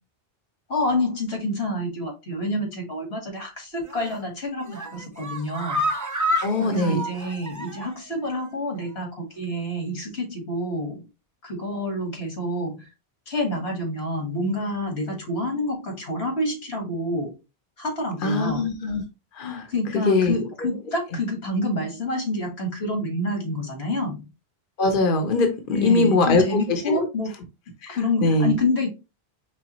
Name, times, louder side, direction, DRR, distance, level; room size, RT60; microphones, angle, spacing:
voice 1, 0.7-5.8 6.6-11.1 11.4-12.9 13.3-17.3 17.8-18.7 19.7-24.3 25.7-27.3 27.9-28.9, left 1 dB, 85° left, 1 dB, 1.9 m, -28 dB
sound 1, 3.9-4.2 4.6-8.0 8.3-8.4 8.8-8.9, equal, 20° right, 0.6 m, -29 dB
voice 2, 6.4-7.0 18.2-19.0 19.3-19.7 20.0-20.3 24.8-26.4 26.7-27.1 27.8-28.5, left 3 dB, 55° left, 5 dB, 1.0 m, -22 dB
4.9 x 3.4 x 2.9 m, 0.27 s
omnidirectional pair, 1.1 m